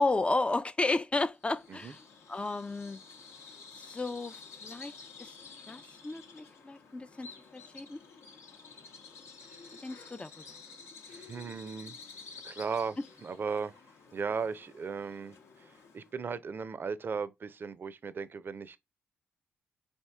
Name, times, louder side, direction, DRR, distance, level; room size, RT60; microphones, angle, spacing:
voice 1, 0.0-2.0 2.3-3.0 3.8-5.3 5.7-7.3 7.5-8.0 9.8-10.4, left 2 dB, 25° left, 0.4 m, -33 dB
Bird vocalization bird call bird song, 1.4-16.2, left 4 dB, 70° left, 0.9 m, -51 dB
voice 2, 9.4-9.8 11.1-12.0 12.4-13.8 14.1-18.8, right 5 dB, 45° right, 0.5 m, -37 dB
4.4 x 2.7 x 3.3 m
hypercardioid pair, 45°, 5 cm